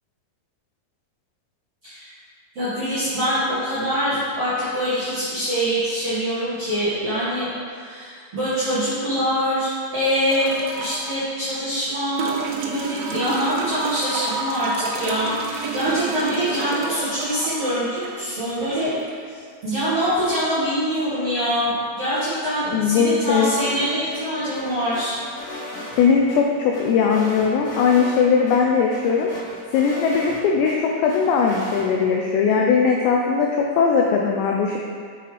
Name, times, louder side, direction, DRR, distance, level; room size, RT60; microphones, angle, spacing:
voice 1, 2.5-12.4 12.6-18.9 19.3-25.2, equal, 60° right, -14 dB, 1.6 m, -24 dB
sound 1, 10.3-11.2 12.2-19.2 20.6-20.7, right 3 dB, 85° right, 3.1 m, -29 dB
voice 2, 22.7-23.5 26.0-29.3 29.7-34.8, left 6 dB, 85° left, 0 dB, 2.5 m, -19 dB
sound 2, 23.3-24.2 24.5-26.4 26.7-28.2 28.5-28.6 28.9-30.7 31.1-31.9, left 2 dB, 65° left, 1.9 m, -36 dB
7.3 x 5.7 x 3.3 m, 2.1 s
omnidirectional pair, 5.5 m